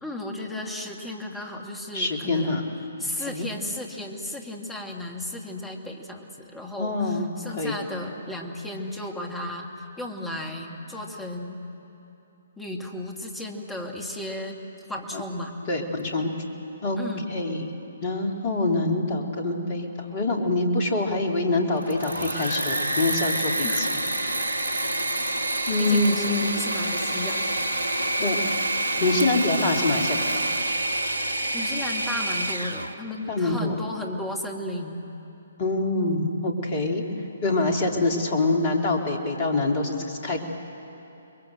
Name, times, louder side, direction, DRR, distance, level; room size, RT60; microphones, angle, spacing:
voice 1, 0.0-2.6 3.0-11.6 12.6-14.6 14.9-15.5 17.0-17.3 23.6-23.8 25.8-27.4 31.5-35.0 37.8-38.1, left 1 dB, 5° left, 1 dB, 2.1 m, -34 dB
voice 2, 1.9-2.6 3.2-3.5 6.7-7.3 7.5-7.7 15.1-15.2 15.7-16.3 16.8-17.0 17.3-17.7 18.0-23.9 25.7-26.4 28.2-28.4 29.0-30.5 33.3-33.8 35.6-37.0 37.4-40.4, left 2 dB, 35° left, 2 dB, 3.1 m, -25 dB
Engine / Mechanisms, 21.7-32.9, right 1 dB, 75° right, 1.2 m, -27 dB
30.0 x 22.0 x 7.8 m, 2.9 s
figure-of-eight pair, 130°, 0 cm